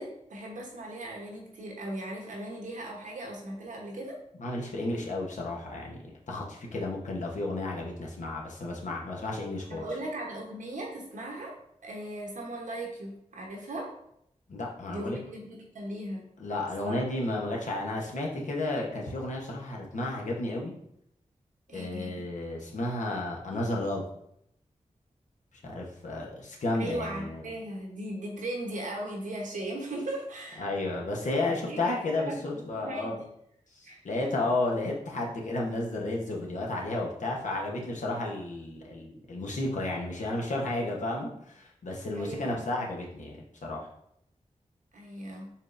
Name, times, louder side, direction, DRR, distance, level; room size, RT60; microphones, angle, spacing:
voice 1, 0.0-4.2 9.7-11.5 11.8-13.9 14.9-16.2 16.8-17.0 21.7-22.3 26.8-30.7 31.4-33.3 33.8-34.0 42.1-42.7 44.9-45.5, right 1 dB, 90° right, -1 dB, 0.9 m, -38 dB
voice 2, 4.4-9.9 14.5-15.2 16.4-20.7 21.7-24.0 25.6-27.4 30.6-33.2 33.7-43.9, left 2 dB, 80° left, -2 dB, 0.9 m, -32 dB
4.4 x 3.6 x 2.5 m, 0.74 s
cardioid pair, 60°, 13 cm